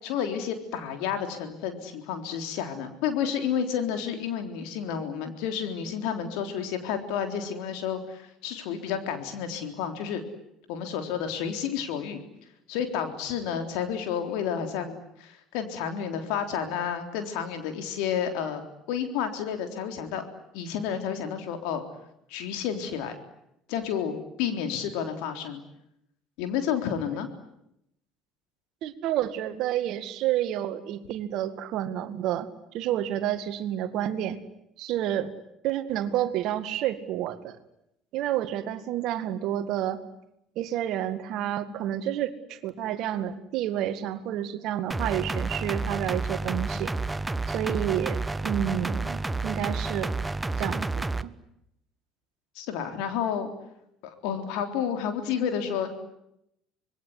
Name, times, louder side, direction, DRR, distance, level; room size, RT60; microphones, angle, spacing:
voice 1, 0.0-10.2 10.7-12.2 12.7-18.6 18.9-20.3 20.5-21.8 22.3-23.2 23.7-25.6 26.4-27.3 52.6-53.5 54.0-55.9, left 8 dB, 70° left, 7 dB, 3.7 m, -30 dB
voice 2, 28.8-32.5 32.7-34.4 34.8-35.3 35.6-37.6 38.1-40.0 40.6-46.9 47.5-50.1 50.6-51.3, right 11 dB, 65° right, 11 dB, 2.1 m, -29 dB
sound 1, 44.9-51.2, right 3 dB, 15° right, 1.1 m, -30 dB
26.0 x 21.5 x 9.8 m, 0.79 s
hypercardioid pair, 65°, 0 cm